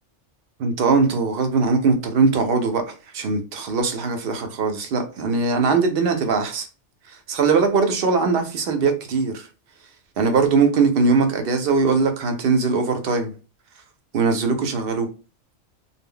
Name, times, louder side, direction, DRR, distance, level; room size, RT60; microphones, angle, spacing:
voice 1, 0.6-6.7 7.1-9.5 10.2-13.3 14.1-15.1, right 4 dB, 60° right, 0.7 m, -21 dB
2.1 x 2.0 x 3.6 m
omnidirectional pair, 1.3 m